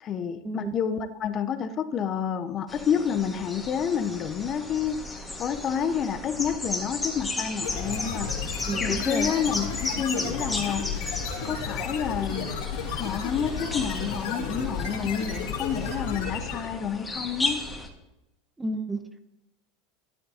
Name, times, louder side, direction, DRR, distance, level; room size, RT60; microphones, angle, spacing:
voice 1, 0.0-5.0 5.4-8.4 8.8-11.1 11.4-12.5 12.9-17.6, left 7 dB, 40° left, 0.9 m, -29 dB
sound 1, 2.7-17.9, left 2 dB, 15° left, 1.8 m, -35 dB
sound 2, 7.6-16.8, left 5 dB, 70° left, 3.4 m, -33 dB
voice 2, 8.7-9.3 18.6-19.2, right 2 dB, 15° right, 1.0 m, -32 dB
12.5 x 12.0 x 2.9 m
hypercardioid pair, 85°, 0 cm